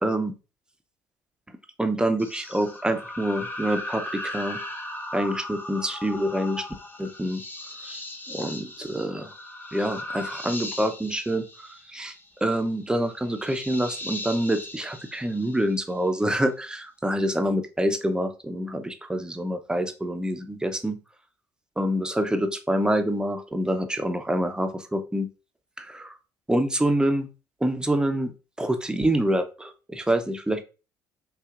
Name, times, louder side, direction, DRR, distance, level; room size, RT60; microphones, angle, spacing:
voice 1, 0.0-0.3 1.8-4.6 5.1-6.6 7.0-7.4 7.8-9.3 9.7-12.1 12.4-21.0 21.8-25.3 25.8-26.1 26.5-27.3 27.6-30.6, right 1 dB, 10° right, 7 dB, 0.7 m, -26 dB
sound 1, 2.2-16.1, left 1 dB, 25° left, 0.9 m, -38 dB
6.2 x 2.4 x 2.5 m, 0.32 s
hypercardioid pair, 65°, 9 cm